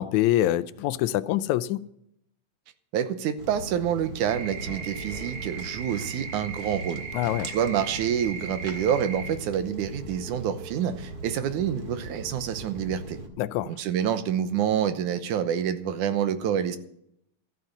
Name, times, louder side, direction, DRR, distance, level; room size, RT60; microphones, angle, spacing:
voice 1, 0.0-1.9 7.1-7.5 13.4-13.7, left 14 dB, 80° left, 1.9 m, -25 dB
voice 2, 2.9-7.0 7.5-13.2 13.7-16.8, right 9 dB, 80° right, 2.4 m, -27 dB
Walk footsteps, 3.4-13.3, right 2 dB, 35° right, 2.0 m, -40 dB
sound 1, 4.3-9.3, right 5 dB, 60° right, 4.1 m, -38 dB
14.0 x 9.2 x 7.2 m
omnidirectional pair, 3.5 m